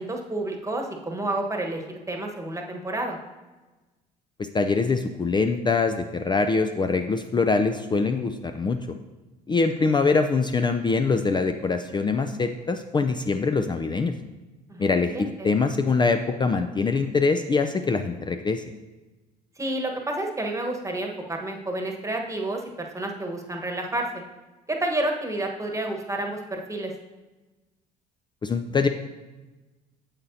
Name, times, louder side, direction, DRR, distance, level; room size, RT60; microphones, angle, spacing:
voice 1, 0.0-3.2 14.7-15.5 19.6-24.2 24.7-26.9, right 1 dB, 15° right, 2 dB, 1.3 m, -30 dB
voice 2, 4.4-8.8 9.5-14.1 14.8-18.6 28.4-28.9, left 4 dB, 20° left, 7 dB, 0.4 m, -23 dB
8.6 x 7.3 x 2.8 m, 1.2 s
hypercardioid pair, 55°, 21 cm